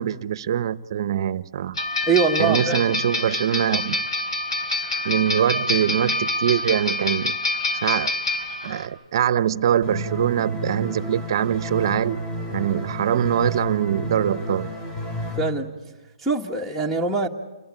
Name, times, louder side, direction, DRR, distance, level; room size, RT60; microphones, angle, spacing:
voice 1, 0.0-1.8 2.4-4.0 5.0-7.4 7.8-8.1 8.6-12.2 12.5-14.7, right 10 dB, 50° right, 0.9 m, -23 dB
sound 1, 1.8-8.9, left 2 dB, 80° left, 5.1 m, -26 dB
voice 2, 2.1-2.8 15.4-15.7 16.2-17.3, right 4 dB, ahead, 1.8 m, -22 dB
sound 2, 9.8-15.4, equal, 20° left, 5.3 m, -31 dB
29.5 x 22.0 x 8.7 m
hypercardioid pair, 135°, 3 cm